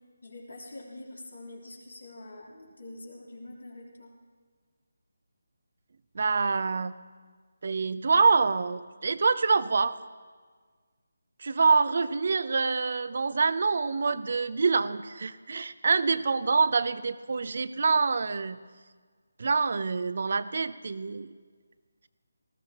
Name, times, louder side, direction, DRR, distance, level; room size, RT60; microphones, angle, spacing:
voice 1, 0.2-4.1, left 2 dB, 80° left, -2 dB, 3.4 m, -45 dB
voice 2, 6.1-6.9 7.6-10.0 11.4-18.6 19.4-21.3, right 4 dB, 55° right, 15 dB, 0.6 m, -26 dB
19.0 x 15.0 x 3.0 m, 1.5 s
figure-of-eight pair, 155°, 0 cm